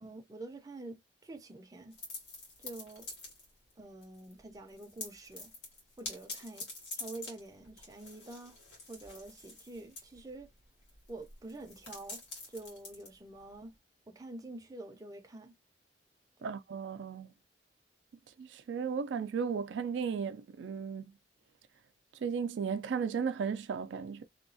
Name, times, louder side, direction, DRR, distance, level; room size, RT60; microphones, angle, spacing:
voice 1, 0.0-2.0 2.6-3.1 3.8-5.5 6.0-6.7 7.0-8.6 8.9-10.5 11.1-12.2 12.5-13.7 14.1-15.5 16.4-16.5, right 2 dB, 20° right, 0.5 m, -47 dB
sound 1, 1.9-3.7 4.0-4.4 4.7-13.7, left 2 dB, 70° left, 1.4 m, -47 dB
voice 2, 16.4-17.3 18.4-21.1 22.2-24.2, right 6 dB, 80° right, 0.3 m, -35 dB
2.8 x 2.3 x 2.6 m
head